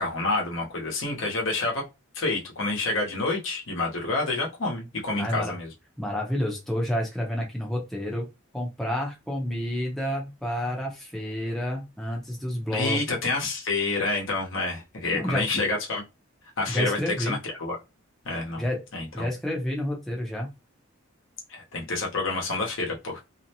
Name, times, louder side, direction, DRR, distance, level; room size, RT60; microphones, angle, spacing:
voice 1, 0.0-1.8 2.1-5.7 12.7-16.0 16.6-17.8 18.2-18.6 18.9-19.3 21.5-23.2, left 3 dB, 65° left, 0.9 m, -28 dB
voice 2, 5.2-5.5 6.0-8.3 8.5-13.0 15.1-15.5 16.7-17.4 18.6-18.8 19.1-20.5, left 1 dB, ahead, 0.6 m, -29 dB
2.6 x 2.1 x 2.8 m
head